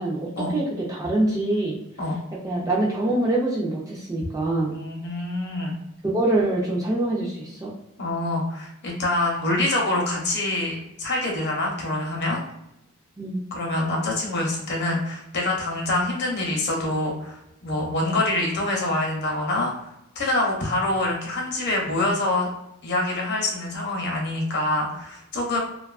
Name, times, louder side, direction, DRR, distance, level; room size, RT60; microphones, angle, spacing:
voice 1, 0.0-1.8 2.4-4.8 6.0-7.7 13.2-13.4, right 2 dB, 15° right, -4 dB, 0.3 m, -24 dB
voice 2, 4.7-5.8 8.0-12.4 13.5-19.9 20.2-22.5 22.8-25.6, left 2 dB, 50° left, -1 dB, 0.6 m, -25 dB
2.6 x 2.3 x 2.3 m, 0.83 s
head